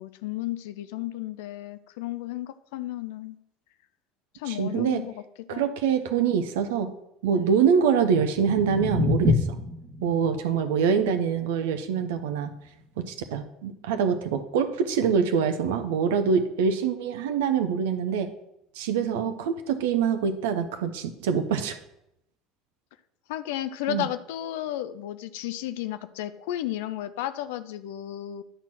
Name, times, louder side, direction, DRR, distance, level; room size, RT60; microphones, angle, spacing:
voice 1, 0.0-3.4 4.3-5.1 5.5-5.7 23.3-28.4, left 13 dB, 65° left, 12 dB, 0.5 m, -33 dB
voice 2, 4.5-5.0 5.5-6.9 7.2-9.4 10.0-12.5 13.0-18.3 18.8-21.8 23.9-24.0, right 6 dB, 65° right, 8 dB, 0.7 m, -25 dB
sound 1, 8.0-14.2, left 3 dB, 40° right, 1.8 m, -30 dB
10.0 x 4.4 x 5.9 m, 0.82 s
figure-of-eight pair, 65°, 0 cm